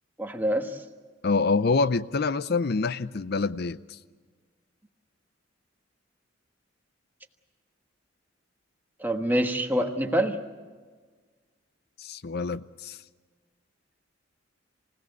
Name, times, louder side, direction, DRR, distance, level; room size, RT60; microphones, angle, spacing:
voice 1, 0.2-0.8 9.0-10.4, equal, 10° right, 1.3 m, -26 dB
voice 2, 1.2-4.0 12.0-13.0, left 4 dB, 55° left, 0.6 m, -26 dB
27.5 x 17.0 x 8.1 m
head